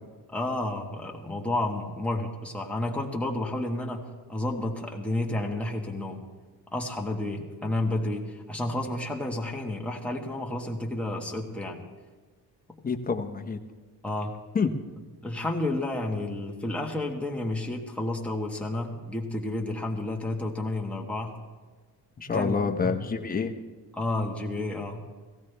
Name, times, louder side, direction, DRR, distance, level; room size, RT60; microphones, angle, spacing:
voice 1, 0.3-6.2 6.7-11.8 14.0-14.4 15.2-21.4 22.3-23.0 23.9-25.0, left 1 dB, 5° left, -1 dB, 1.3 m, -31 dB
voice 2, 12.8-13.6 14.5-14.7 22.2-23.5, left 5 dB, 20° left, 6 dB, 0.8 m, -27 dB
17.5 x 15.5 x 3.3 m, 1.3 s
cardioid pair, 145°, 40 cm